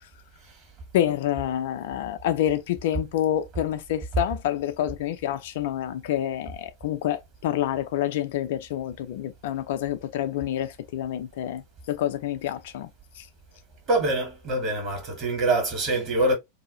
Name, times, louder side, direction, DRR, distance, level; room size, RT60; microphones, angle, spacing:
voice 1, 0.9-12.9 13.2-13.3, left 11 dB, 55° left, 0.5 m, -28 dB
voice 2, 13.9-16.3, right 2 dB, 35° right, 1.6 m, -24 dB
2.8 x 2.4 x 2.9 m
figure-of-eight pair, 90°, 0 cm